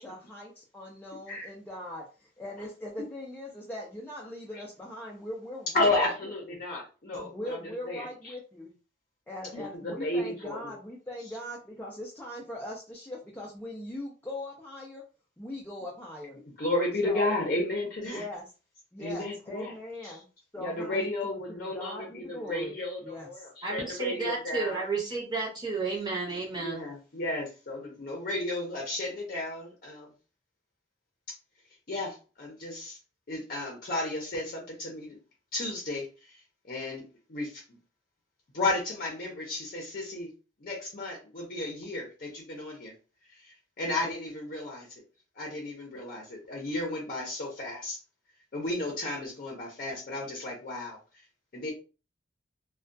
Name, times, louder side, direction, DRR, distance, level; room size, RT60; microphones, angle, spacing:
voice 1, 0.0-6.1 6.5-6.6 7.1-8.7 9.3-15.0 15.4-16.4 17.0-17.3 18.0-18.4 18.9-20.3 20.5-22.8 23.0-23.5, left 1 dB, 10° left, 0.3 m, -40 dB
voice 2, 5.7-7.6 7.8-8.1 9.5-10.7 16.6-18.2 19.0-19.7 20.0-20.2 20.6-24.8 26.3-30.1 31.9-33.0 33.3-35.2 35.5-36.1 36.7-37.0 37.3-37.6 38.5-40.3 40.6-42.9 43.8-44.9 45.4-48.0 48.5-51.0 51.5-51.7, left 2 dB, 50° left, 0.6 m, -33 dB
voice 3, 23.6-26.8, right 3 dB, 25° right, 0.7 m, -32 dB
2.3 x 2.1 x 2.5 m
head